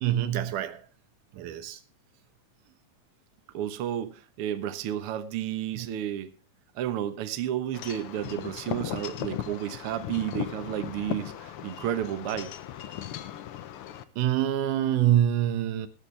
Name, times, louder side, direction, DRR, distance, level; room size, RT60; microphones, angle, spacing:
voice 1, 0.0-0.8 1.3-1.8 5.8-5.9 14.2-15.9, right 11 dB, 80° right, 2.5 m, -25 dB
voice 2, 3.5-6.3 6.7-12.5, right 11 dB, 60° right, 1.6 m, -32 dB
Wind chime / Wind, 7.7-14.0, left 11 dB, 90° left, 1.2 m, -37 dB
20.5 x 8.6 x 3.3 m
omnidirectional pair, 3.7 m